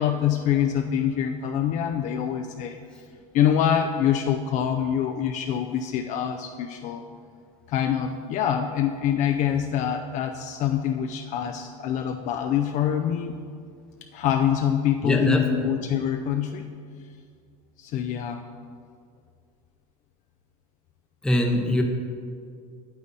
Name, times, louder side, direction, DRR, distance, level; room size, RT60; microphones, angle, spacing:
voice 1, 0.0-2.9 3.3-7.1 7.7-13.4 14.1-16.7 17.8-18.5, left 9 dB, 45° left, 5 dB, 0.5 m, -25 dB
voice 2, 15.0-15.5 21.2-21.8, equal, 5° left, 2 dB, 0.8 m, -22 dB
8.8 x 8.2 x 4.1 m, 2.2 s
supercardioid pair, 120°, 18 cm